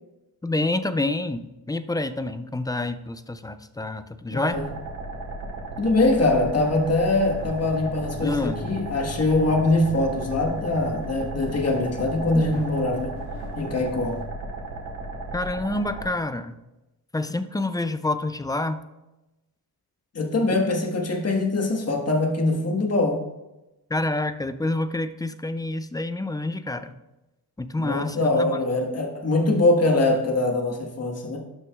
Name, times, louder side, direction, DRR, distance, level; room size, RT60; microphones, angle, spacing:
voice 1, 0.4-4.6 8.2-8.7 12.3-12.6 15.3-16.6 17.1-18.8 23.9-26.9 27.6-28.6, left 2 dB, 10° left, 0.3 m, -28 dB
voice 2, 4.3-4.7 5.8-13.1 13.5-14.2 20.1-23.2 27.8-31.4, left 2 dB, 40° left, 1.5 m, -23 dB
sound 1, 4.5-16.1, right 2 dB, 80° right, 2.3 m, -35 dB
sound 2, 7.4-14.2, left 3 dB, 80° left, 1.7 m, -41 dB
12.0 x 6.0 x 2.4 m
cardioid pair, 115°, 40 cm